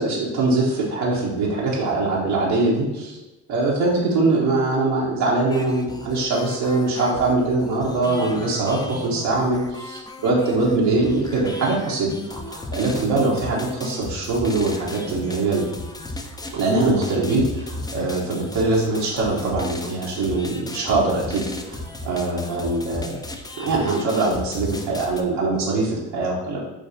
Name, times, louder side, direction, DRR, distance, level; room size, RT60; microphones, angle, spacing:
voice 1, 0.0-3.2 3.5-15.6 16.5-23.2 23.6-26.6, right 2 dB, 80° right, -5 dB, 1.0 m, -22 dB
sound 1, 5.5-25.2, left 2 dB, 10° left, 0.3 m, -35 dB
6.1 x 2.3 x 2.6 m, 1.0 s
supercardioid pair, 60°, 42 cm